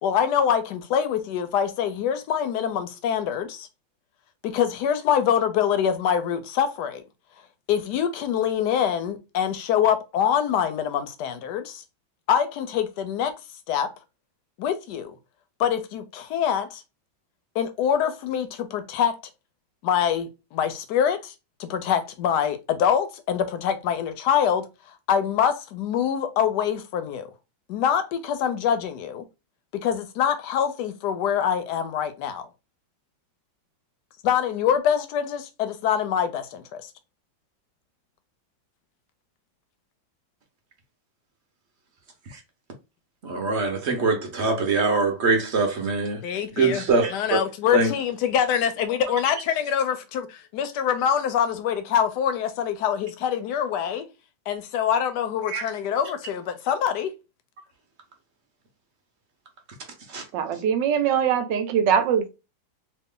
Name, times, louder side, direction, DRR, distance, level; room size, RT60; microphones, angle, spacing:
voice 1, 0.0-3.7 4.4-7.0 7.7-11.8 12.3-13.3 13.7-13.9 14.6-15.2 15.6-16.8 17.5-19.1 19.8-21.3 21.6-24.7 25.1-27.3 27.7-29.2 29.8-32.4 34.2-36.8 46.2-46.8 47.1-50.3 50.5-54.0 54.5-57.1, left 8 dB, 70° left, 1.1 m, -24 dB
voice 2, 43.2-46.2 46.6-47.4 47.7-47.9 55.5-55.6 60.1-60.2, right 4 dB, 50° right, 0.8 m, -23 dB
voice 3, 60.3-62.3, right 8 dB, 75° right, 1.2 m, -22 dB
3.2 x 2.4 x 3.6 m
omnidirectional pair, 2.1 m